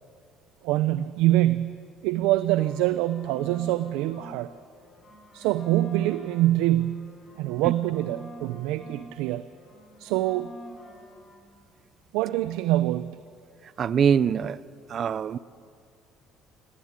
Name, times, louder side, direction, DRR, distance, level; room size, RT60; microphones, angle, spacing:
voice 1, 0.6-4.5 5.3-9.5 10.0-10.5 12.1-13.2, right 15 dB, 90° right, 13 dB, 0.6 m, -25 dB
sound 1, 2.2-4.4 4.7-9.1 9.4-11.4, right 1 dB, 30° left, 4.0 m, -47 dB
voice 2, 13.8-14.6 14.9-15.4, right 7 dB, 40° right, 18 dB, 0.6 m, -23 dB
18.0 x 17.0 x 9.6 m, 2.3 s
cardioid pair, 130°, 0 cm